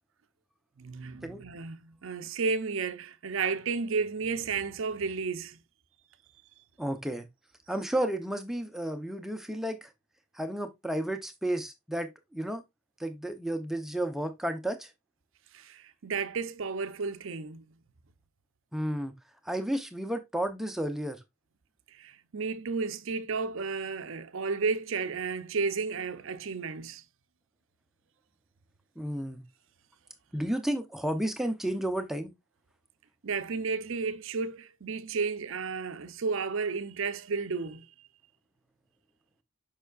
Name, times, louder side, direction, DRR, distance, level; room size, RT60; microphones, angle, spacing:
voice 1, 0.8-5.6 15.5-17.6 21.9-27.0 33.2-37.9, right 4 dB, 60° right, 0.6 m, -32 dB
voice 2, 6.8-7.3 7.7-9.9 10.3-12.6 13.0-14.9 18.7-19.1 19.4-21.2 29.0-29.4 30.3-32.3, right 1 dB, ahead, 0.6 m, -32 dB
6.9 x 5.6 x 2.4 m
head